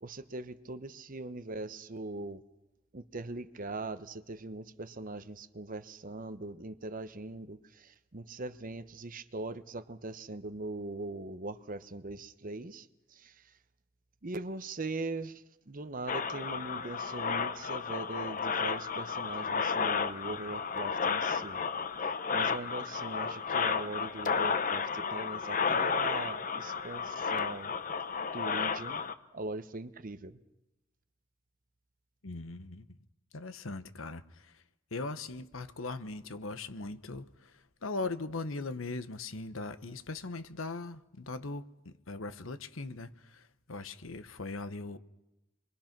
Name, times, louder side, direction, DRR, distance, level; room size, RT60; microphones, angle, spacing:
voice 1, 0.0-2.4 2.9-13.6 14.2-21.6 22.3-27.7 28.3-29.0 29.3-30.4, right 2 dB, 45° right, 0.9 m, -41 dB
sound 1, 16.1-29.1, left 5 dB, 40° left, 1.0 m, -32 dB
voice 2, 32.2-33.0 33.3-34.6 34.9-45.0, left 3 dB, 80° left, 1.1 m, -40 dB
28.0 x 23.0 x 6.0 m
head